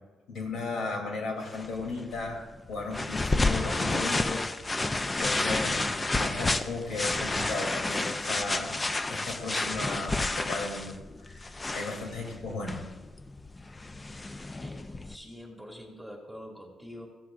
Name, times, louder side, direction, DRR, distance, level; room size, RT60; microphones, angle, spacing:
voice 1, 0.3-4.9 5.2-8.8 9.1-12.8, left 3 dB, 75° left, 1 dB, 3.0 m, -36 dB
sound 1, 1.5-15.2, left 2 dB, 20° left, 0.5 m, -31 dB
voice 2, 15.0-17.1, equal, 5° left, 0 dB, 2.4 m, -45 dB
15.5 x 13.5 x 2.6 m, 1.2 s
cardioid pair, 90°, 0 cm